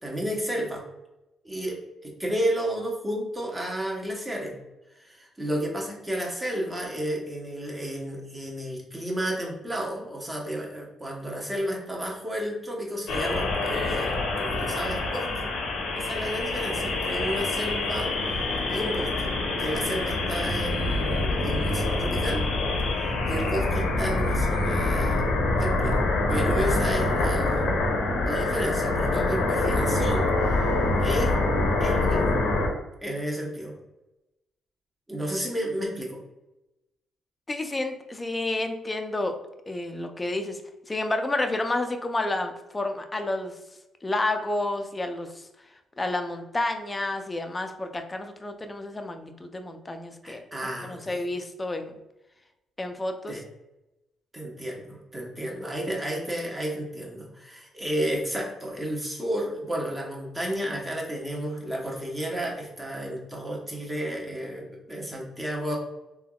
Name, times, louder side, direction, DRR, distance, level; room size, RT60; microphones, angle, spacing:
voice 1, 0.0-0.8 1.4-4.5 4.9-15.5 15.9-22.5 22.9-27.8 28.2-31.4 31.8-32.4 33.0-33.7 35.1-36.2 50.2-51.2 53.3-53.4 54.3-65.8, equal, 15° right, -1 dB, 0.8 m, -32 dB
sound 1, 13.1-32.7, left 2 dB, 85° left, 0.7 m, -25 dB
voice 2, 37.5-39.4 39.7-40.6 40.9-43.5 44.0-45.4 46.0-50.4 50.8-51.9 52.8-53.4, left 2 dB, 20° left, 6 dB, 0.4 m, -30 dB
3.4 x 2.2 x 2.3 m, 0.96 s
cardioid pair, 90°, 0 cm